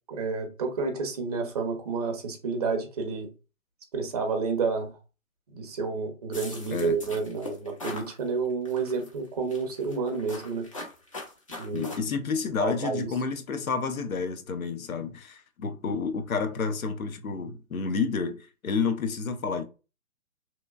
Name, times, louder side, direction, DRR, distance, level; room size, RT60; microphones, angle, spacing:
voice 1, 0.1-3.3 3.9-5.0 5.5-10.7 11.6-12.0 12.6-13.1, right 4 dB, 30° right, 0.5 m, -30 dB
sound 1, 6.3-8.1 8.7-9.1 9.5-12.0, left 2 dB, 25° left, 0.5 m, -40 dB
voice 2, 11.7-19.6, left 5 dB, 90° left, 0.6 m, -30 dB
2.9 x 2.2 x 2.3 m
figure-of-eight pair, 140°, 41 cm